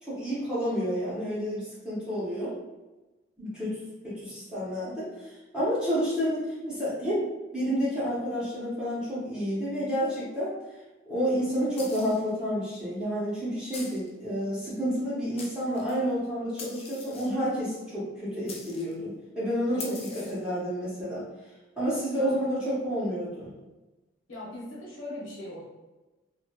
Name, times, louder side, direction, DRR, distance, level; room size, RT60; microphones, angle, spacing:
voice 1, 0.0-2.5 3.4-3.8 4.0-7.2 7.5-10.5 11.1-21.2 21.8-23.5, equal, 5° right, -10 dB, 0.9 m, -30 dB
sound 1, 11.7-12.3 13.7-14.1 15.0-15.1 15.4-16.0 16.6-17.5 18.5-18.9 19.8-20.5, left 3 dB, 30° left, 0.4 m, -43 dB
voice 2, 19.7-20.4 22.1-22.4 24.3-25.7, left 1 dB, 85° left, -5 dB, 1.0 m, -40 dB
2.7 x 2.4 x 2.8 m, 1.1 s
head